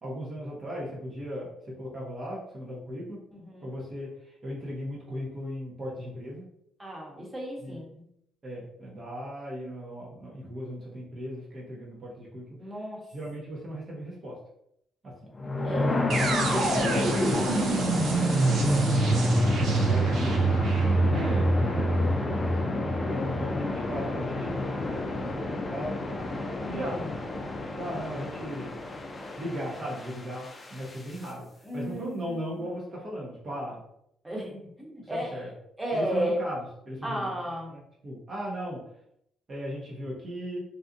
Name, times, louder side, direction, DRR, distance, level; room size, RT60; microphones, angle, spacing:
voice 1, 0.0-3.2 3.6-6.5 7.6-8.0 8.4-12.7 13.1-14.4 15.0-15.3 16.5-17.7 18.3-20.6 21.3-26.0 26.7-27.0 27.8-28.8 29.4-33.8 35.0-35.5 35.9-37.3 37.7-38.8 39.5-40.6, equal, 40° right, -4 dB, 0.8 m, -37 dB
voice 2, 3.3-3.7 6.8-7.9 12.6-13.1 15.6-16.1 16.7-16.8 21.1-21.5 26.6-27.1 31.6-32.7 34.2-35.5 35.8-36.4 37.0-37.7, equal, 15° right, -3 dB, 1.1 m, -34 dB
sound 1, 15.3-31.3, left 2 dB, 35° left, 0.5 m, -31 dB
sound 2, 16.1-24.0, right 3 dB, 70° right, 0.6 m, -26 dB
2.6 x 2.3 x 2.6 m, 0.75 s
supercardioid pair, 60°, 0 cm